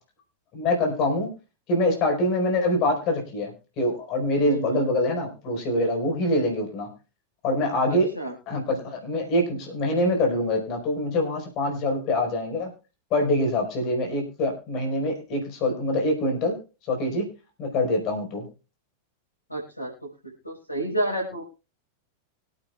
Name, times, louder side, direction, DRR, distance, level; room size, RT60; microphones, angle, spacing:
voice 1, 0.5-1.3 1.7-6.9 7.4-8.1 8.5-12.7 13.1-16.6 16.9-17.3 17.6-18.5, left 1 dB, 40° left, 2 dB, 4.8 m, -25 dB
voice 2, 4.4-4.8 7.9-8.3 19.5-19.9 20.4-21.4, right 1 dB, 85° left, -4 dB, 5.0 m, -30 dB
24.5 x 9.1 x 2.4 m, 0.32 s
figure-of-eight pair, 90°, 0 cm